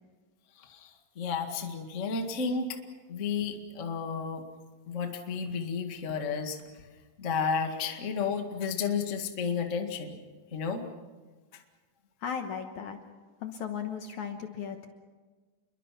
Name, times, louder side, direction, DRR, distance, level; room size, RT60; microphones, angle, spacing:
voice 1, 0.6-2.8 3.1-4.4 4.9-6.6 7.2-10.2 10.5-10.8 11.5-11.6, left 5 dB, 30° left, 4 dB, 1.3 m, -32 dB
voice 2, 12.2-13.0 13.4-14.9, left 7 dB, 65° left, 6 dB, 2.2 m, -36 dB
28.5 x 22.5 x 5.9 m, 1.3 s
omnidirectional pair, 4.4 m